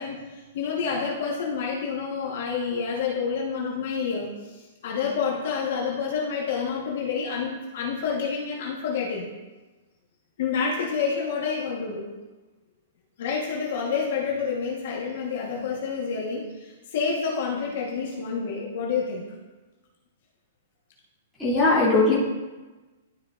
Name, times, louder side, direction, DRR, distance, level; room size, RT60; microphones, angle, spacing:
voice 1, 0.0-9.3 10.4-12.0 13.2-19.2, left 5 dB, 50° left, -2 dB, 1.2 m, -28 dB
voice 2, 21.4-22.1, left 2 dB, ahead, -14 dB, 2.5 m, -19 dB
12.0 x 5.3 x 2.5 m, 1.2 s
hypercardioid pair, 175°, 0 cm